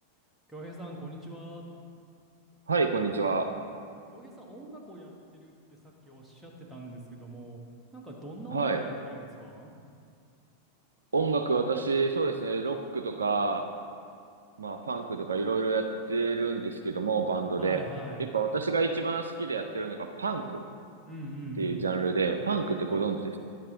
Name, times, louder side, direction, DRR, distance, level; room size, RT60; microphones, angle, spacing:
voice 1, 0.5-1.6 4.1-5.5 5.8-7.6 7.9-9.7 17.6-18.3 21.1-21.8, right 1 dB, 5° right, -2 dB, 1.4 m, -42 dB
voice 2, 2.7-3.5 8.5-8.8 11.1-13.7 14.6-17.8 18.3-20.6 21.6-23.4, right 4 dB, 70° right, 6 dB, 0.4 m, -28 dB
10.5 x 7.4 x 3.8 m, 2.3 s
figure-of-eight pair, 90°, 0 cm